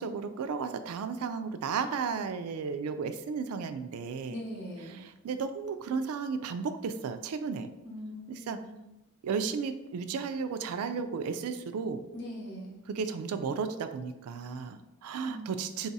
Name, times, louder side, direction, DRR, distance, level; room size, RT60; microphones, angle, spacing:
voice 1, 0.0-4.4 5.2-7.7 8.3-8.6 9.2-12.0 12.9-15.9, right 5 dB, 80° right, 10 dB, 0.3 m, -34 dB
voice 2, 4.3-5.0 7.8-8.8 12.1-12.8 15.2-15.4, equal, 55° left, -4 dB, 1.4 m, -42 dB
3.8 x 2.4 x 4.0 m, 0.94 s
head